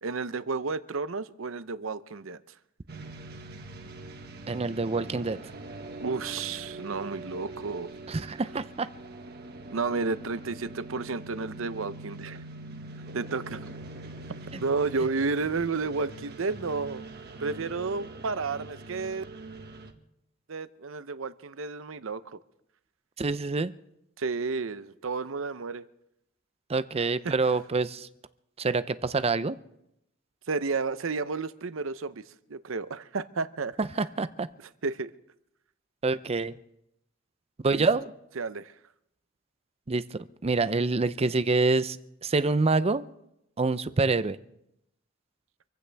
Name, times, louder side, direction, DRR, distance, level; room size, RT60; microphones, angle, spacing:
voice 1, 0.0-2.4 6.0-7.9 9.7-12.5 13.1-13.6 14.6-17.1 17.4-19.2 20.5-22.4 24.2-25.8 27.2-27.3 30.5-32.2 32.5-33.8 34.8-35.1 37.7-37.9 38.4-38.7, right 4 dB, 75° right, 0.7 m, -31 dB
sound 1, 2.9-19.9, right 2 dB, 55° right, 1.5 m, -43 dB
voice 2, 4.5-5.4 8.1-8.9 14.5-14.6 23.2-23.7 26.7-28.1 28.6-29.6 33.8-34.5 36.0-36.6 37.6-38.1 39.9-43.1 43.6-44.4, right 3 dB, 30° right, 0.6 m, -26 dB
26.5 x 15.5 x 3.5 m
head